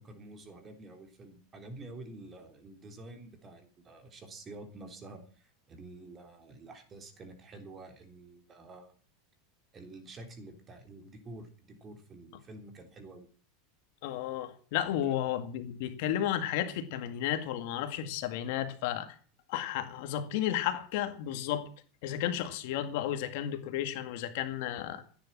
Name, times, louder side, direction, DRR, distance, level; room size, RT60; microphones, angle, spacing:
voice 1, 0.0-8.9 9.7-13.3 15.0-15.2, right 2 dB, 20° right, 3.4 m, -49 dB
voice 2, 14.0-19.1 19.5-21.7 22.0-25.0, left 11 dB, 60° left, 2.1 m, -33 dB
15.5 x 10.0 x 7.5 m
supercardioid pair, 150°, 0 cm